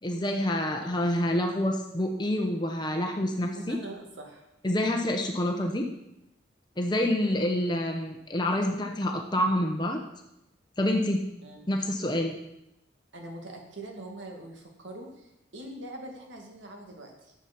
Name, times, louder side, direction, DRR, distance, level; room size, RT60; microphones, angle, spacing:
voice 1, 0.0-3.8 4.6-5.9 6.8-10.0 10.8-11.2 11.7-12.4, left 1 dB, 25° left, 3 dB, 0.9 m, -27 dB
voice 2, 3.5-4.5 11.4-11.6 13.1-17.3, right 1 dB, 85° right, 2 dB, 2.1 m, -43 dB
10.5 x 7.1 x 6.0 m, 0.86 s
head